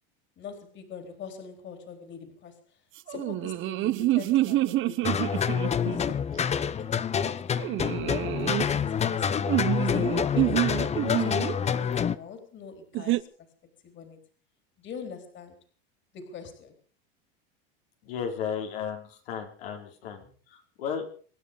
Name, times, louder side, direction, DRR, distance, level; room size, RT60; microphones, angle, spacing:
voice 1, 0.4-2.8 3.1-8.3 8.6-13.3 13.8-14.2 14.8-15.6 16.1-16.8 20.2-20.3, left 6 dB, 40° left, 7 dB, 4.0 m, -43 dB
sound 1, 3.1-6.1 7.6-8.7 9.5-11.6 12.9-13.2, right 16 dB, 40° right, 0.9 m, -27 dB
sound 2, 5.0-12.1, left 7 dB, 20° left, 0.8 m, -27 dB
voice 2, 18.0-20.2 20.5-21.2, left 7 dB, 80° left, 2 dB, 4.4 m, -34 dB
26.0 x 10.5 x 5.2 m, 0.43 s
supercardioid pair, 120°, 30 cm